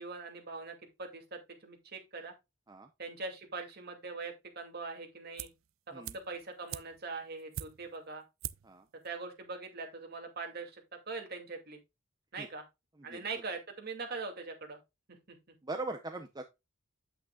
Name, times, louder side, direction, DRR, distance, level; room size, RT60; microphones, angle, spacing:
voice 1, 0.0-2.3 3.0-5.5 5.9-8.2 9.0-11.8 12.3-12.6 13.0-14.8 15.1-15.5, right 4 dB, 50° right, 2.5 m, -42 dB
sound 1, 5.4-5.7 6.0-8.0 8.4-8.8 9.0-9.1, right 11 dB, 80° right, 0.4 m, -43 dB
voice 2, 15.6-16.4, right 2 dB, 20° right, 0.7 m, -40 dB
8.7 x 8.1 x 2.3 m
head